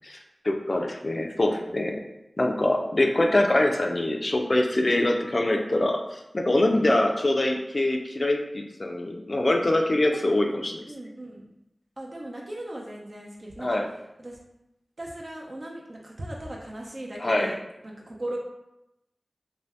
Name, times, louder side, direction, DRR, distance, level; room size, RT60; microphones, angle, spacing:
voice 1, 0.4-2.0 2.4-10.9 13.6-13.9 17.2-17.5, left 1 dB, 50° left, 2 dB, 0.4 m, -24 dB
voice 2, 1.4-1.7 4.8-5.1 6.8-7.1 10.1-10.2 10.9-11.5 12.0-13.8 14.2-14.4 15.0-17.6 17.8-18.4, right 1 dB, 55° right, -2 dB, 0.7 m, -38 dB
2.6 x 2.2 x 3.3 m, 0.88 s
cardioid pair, 40°, 0 cm